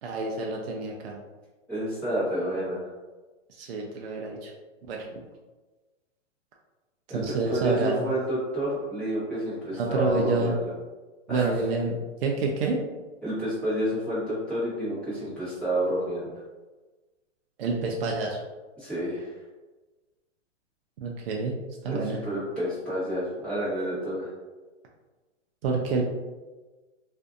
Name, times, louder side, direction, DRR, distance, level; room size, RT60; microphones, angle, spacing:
voice 1, 0.0-1.2 3.6-4.5 4.9-5.0 7.1-8.0 9.7-10.5 11.3-12.8 17.6-18.4 21.0-21.5 21.8-22.2 25.6-26.0, right 3 dB, 50° right, -1 dB, 0.4 m, -28 dB
voice 2, 1.7-2.9 7.1-10.6 11.3-11.5 13.2-16.4 18.8-19.3 21.9-24.3, equal, 5° left, -13 dB, 1.1 m, -29 dB
2.5 x 2.4 x 2.4 m, 1.2 s
hypercardioid pair, 150°, 38 cm